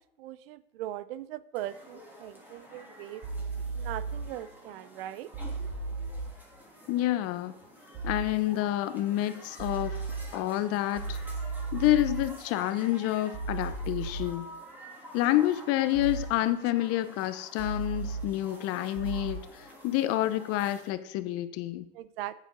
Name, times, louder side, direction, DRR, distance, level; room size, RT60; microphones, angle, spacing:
voice 1, 0.2-3.2 3.8-5.3 15.2-15.4 21.9-22.3, right 13 dB, 65° right, 16 dB, 0.7 m, -40 dB
sound 1, 1.5-20.9, equal, 5° right, 2.8 m, -50 dB
sound 2, 3.2-4.2 5.3-6.3 7.9-8.3 9.6-10.2 11.0-12.2 13.3-14.3 15.9-16.3 17.6-18.2 19.0-19.3, right 4 dB, 45° right, 4.4 m, -34 dB
voice 2, 6.9-7.5 8.0-9.9 10.3-11.2 11.7-14.5 15.1-19.4 19.8-21.8, left 14 dB, 50° left, 13 dB, 0.9 m, -28 dB
9.1 x 7.2 x 5.1 m, 0.72 s
hypercardioid pair, 105°, 31 cm